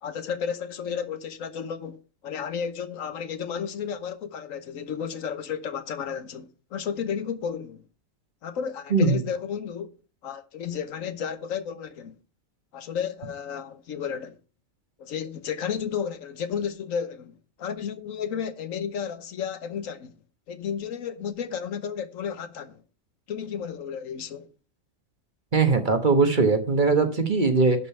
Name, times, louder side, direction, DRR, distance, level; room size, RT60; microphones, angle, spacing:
voice 1, 0.0-7.8 8.4-10.0 10.2-12.2 12.7-14.4 15.0-20.2 20.5-22.8 23.3-24.5, left 7 dB, 75° left, 1.3 m, -32 dB
voice 2, 8.9-9.2 25.5-27.9, right 4 dB, 40° right, 1.3 m, -21 dB
11.5 x 5.4 x 5.5 m
omnidirectional pair, 1.4 m